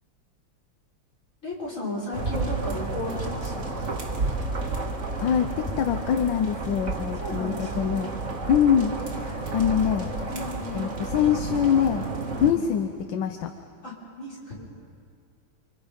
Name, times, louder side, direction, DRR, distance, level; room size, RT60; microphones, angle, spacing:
voice 1, 1.4-4.0 7.2-8.1 10.3-11.0 12.4-12.6 13.8-14.6, left 1 dB, 35° left, -5 dB, 5.7 m, -35 dB
sound 1, 2.1-12.5, right 3 dB, 40° right, 1.9 m, -31 dB
voice 2, 5.2-8.1 8.5-10.1 10.7-12.1 12.4-13.5, left 8 dB, 70° left, 7 dB, 1.5 m, -24 dB
29.5 x 25.5 x 5.3 m, 2.3 s
omnidirectional pair, 2.2 m